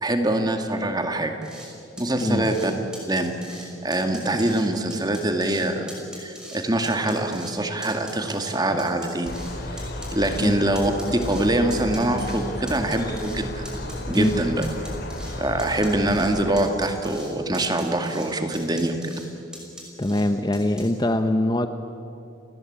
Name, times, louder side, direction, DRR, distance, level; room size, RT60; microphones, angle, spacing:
voice 1, 0.0-1.3 2.0-2.7 3.1-5.9 6.1-9.4 9.7-9.8 10.1-13.6 14.1-14.7 15.4-19.1, right 1 dB, 20° right, 5 dB, 2.2 m, -24 dB
sound 1, 1.4-1.7 2.0-2.7 2.9-3.7 3.9-4.6 4.9-5.6 5.9-6.6 6.8-7.5 7.8-9.5 9.8-11.5 11.7-12.4 12.7-13.4 13.7-14.4 14.6-15.3 15.6-16.3 16.6-17.3 17.5-18.3 18.5-19.2 19.5-20.2 20.5-20.8, equal, 5° right, 5.8 m, -42 dB
sound 2, 9.2-17.2, left 1 dB, 55° left, 2.8 m, -33 dB
voice 2, 20.0-21.7, left 1 dB, 20° left, 8 dB, 0.9 m, -22 dB
30.0 x 20.0 x 8.8 m, 2.8 s
head